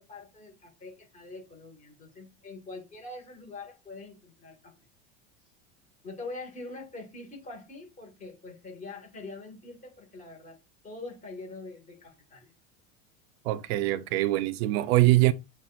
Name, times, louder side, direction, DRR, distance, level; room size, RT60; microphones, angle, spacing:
voice 1, 0.0-4.7 6.0-10.6 10.8-12.5, left 3 dB, 20° left, 1.8 m, -44 dB
voice 2, 13.5-15.3, right 17 dB, 70° right, 0.5 m, -23 dB
6.9 x 2.6 x 2.5 m
supercardioid pair, 130°, 32 cm